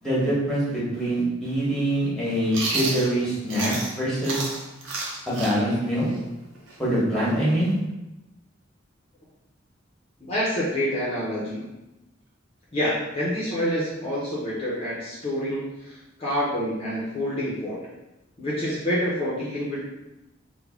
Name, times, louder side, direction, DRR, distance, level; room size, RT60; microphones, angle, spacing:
voice 1, 0.0-4.4 5.3-6.1 6.8-7.7, right 1 dB, ahead, -7 dB, 1.1 m, -24 dB
Chewing mastication, 2.5-3.9 4.2-7.8, right 3 dB, 75° right, 0.7 m, -31 dB
voice 2, 10.2-11.7 12.7-17.8 18.4-19.9, equal, 30° left, -7 dB, 0.6 m, -27 dB
3.4 x 2.1 x 3.4 m, 0.97 s
head